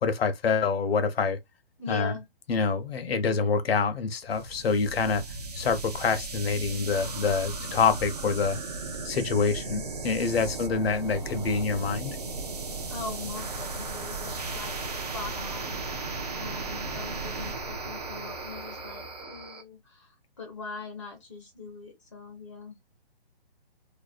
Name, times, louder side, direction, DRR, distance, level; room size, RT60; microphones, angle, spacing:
voice 1, 0.0-1.4 1.9-2.2 2.5-5.2 5.5-8.6 9.0-12.2, left 5 dB, 75° left, 0.7 m, -26 dB
voice 2, 1.8-2.3 12.9-15.9 16.3-22.8, left 3 dB, 30° left, 0.4 m, -41 dB
sound 1, 4.3-19.6, right 3 dB, 40° right, 0.4 m, -36 dB
2.6 x 2.0 x 2.3 m
hypercardioid pair, 170°, 30 cm